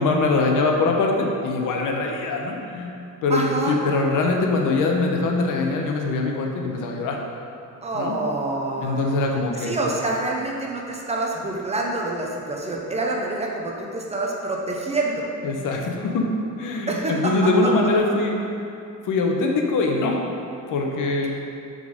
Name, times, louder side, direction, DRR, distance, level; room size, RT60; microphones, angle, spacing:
voice 1, 0.0-2.9 3.2-7.2 7.9-8.2 8.8-9.8 15.4-16.3 16.6-18.3 19.0-20.2 20.7-21.3, left 3 dB, 70° left, 1 dB, 0.9 m, -22 dB
voice 2, 3.3-3.7 7.8-9.1 9.6-15.3 16.9-17.3 17.6-17.7, right 2 dB, 20° right, -1 dB, 0.5 m, -26 dB
6.9 x 3.9 x 5.0 m, 2.6 s
cardioid pair, 175°, 33 cm